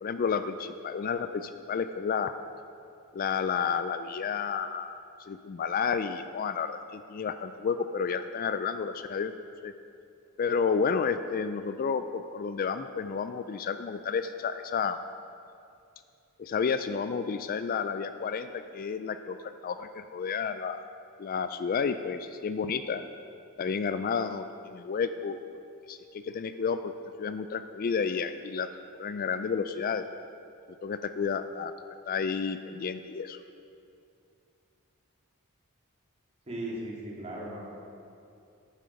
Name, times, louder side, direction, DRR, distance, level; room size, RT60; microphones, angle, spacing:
voice 1, 0.0-2.3 3.1-9.3 9.6-9.7 10.4-15.0 16.4-20.8 21.2-23.0 23.6-25.4 25.9-26.9 27.2-28.7 29.0-30.0 30.8-31.7 32.1-33.4, left 6 dB, 40° left, 10 dB, 0.3 m, -31 dB
voice 2, 36.5-37.7, right 1 dB, 30° right, -5 dB, 2.5 m, -37 dB
10.5 x 9.2 x 5.2 m, 2.5 s
head